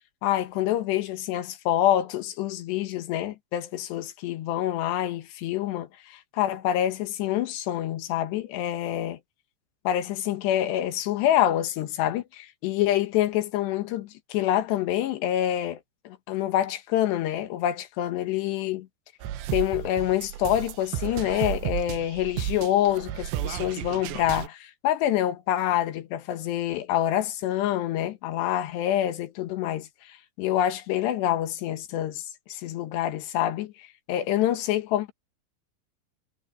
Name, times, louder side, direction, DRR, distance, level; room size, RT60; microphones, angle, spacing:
voice 1, 0.2-9.2 9.8-18.9 19.5-35.1, left 12 dB, 75° left, 3.4 m, -26 dB
sound 1, 19.2-24.5, right 11 dB, 75° right, 3.2 m, -33 dB
omnidirectional pair, 5.2 m